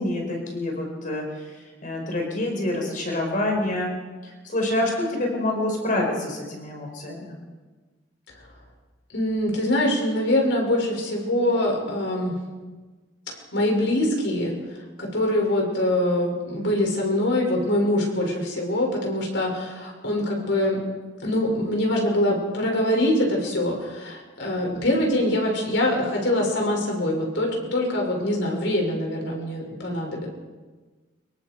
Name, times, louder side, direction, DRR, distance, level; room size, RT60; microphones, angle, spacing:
voice 1, 0.0-3.9 4.2-7.4, left 1 dB, 45° left, 0 dB, 4.9 m, -27 dB
voice 2, 9.1-12.3 13.5-14.5 15.0-20.8 21.2-30.3, left 1 dB, 75° left, 0 dB, 6.8 m, -24 dB
26.5 x 23.0 x 4.9 m, 1.3 s
head